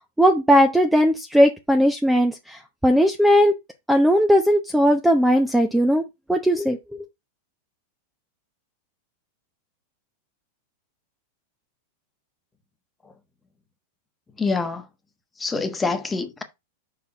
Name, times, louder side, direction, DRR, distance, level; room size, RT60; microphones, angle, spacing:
voice 1, 0.2-3.5 3.9-6.0 6.3-6.8, equal, 5° right, 0.8 m, -18 dB
voice 2, 14.4-14.8 15.4-16.4, left 4 dB, 10° left, 1.2 m, -25 dB
5.5 x 4.6 x 5.4 m
supercardioid pair, 135°, 0 cm